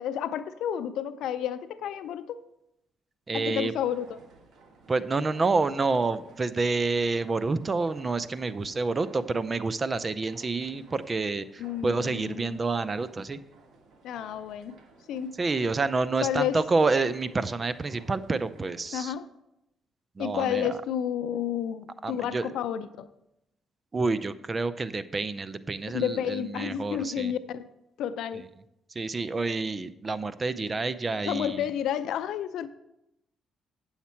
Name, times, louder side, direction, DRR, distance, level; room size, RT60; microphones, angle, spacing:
voice 1, 0.0-2.4 3.3-4.1 11.6-12.6 14.0-14.8 15.1-15.4 16.2-16.6 18.9-19.3 20.2-23.1 25.9-27.7 28.0-28.5 31.2-32.7, left 9 dB, 80° left, 12 dB, 0.5 m, -31 dB
voice 2, 3.3-3.7 4.9-13.4 15.4-19.1 20.2-20.8 22.0-22.5 23.9-27.3 28.9-31.7, right 3 dB, 30° right, 14 dB, 0.5 m, -28 dB
sound 1, 3.8-19.1, right 4 dB, 65° right, 1.4 m, -56 dB
9.3 x 7.2 x 4.4 m, 0.85 s
cardioid pair, 90°, 0 cm